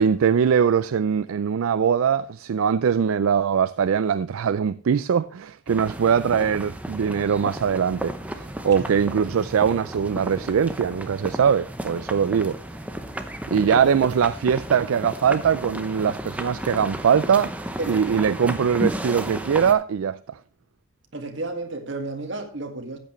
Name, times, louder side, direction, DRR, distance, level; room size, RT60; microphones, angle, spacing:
voice 1, 0.0-12.5 13.5-17.5 17.9-20.4, right 7 dB, 80° right, 0.4 m, -22 dB
sound 1, 5.7-19.7, right 1 dB, 5° right, 0.7 m, -33 dB
voice 2, 8.8-9.1 13.5-13.9 17.8-18.4 21.1-23.0, right 2 dB, 60° right, 1.9 m, -32 dB
13.5 x 8.8 x 3.1 m
head